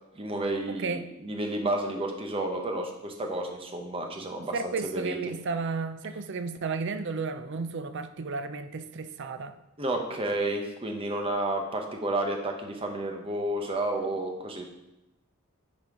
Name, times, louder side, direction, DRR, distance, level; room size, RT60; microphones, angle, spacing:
voice 1, 0.1-5.2 9.8-14.6, right 1 dB, 25° right, 3 dB, 0.9 m, -31 dB
voice 2, 0.7-1.0 4.5-9.6, right 4 dB, 55° right, 10 dB, 0.5 m, -33 dB
8.8 x 4.2 x 4.8 m, 0.93 s
head